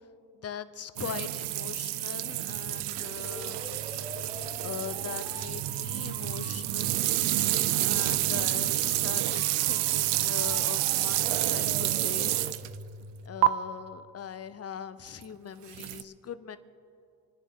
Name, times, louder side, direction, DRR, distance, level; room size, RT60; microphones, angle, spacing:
voice 1, 0.3-4.2 4.6-7.0 7.8-12.5 13.2-16.6, left 8 dB, 35° left, 12 dB, 0.9 m, -41 dB
sound 1, 1.0-12.8 13.4-13.5 15.7-16.0, right 15 dB, 80° right, 0.6 m, -29 dB
sound 2, 2.8-14.2, equal, 20° right, 1.9 m, -44 dB
27.0 x 10.0 x 3.8 m, 2.5 s
supercardioid pair, 85°, 42 cm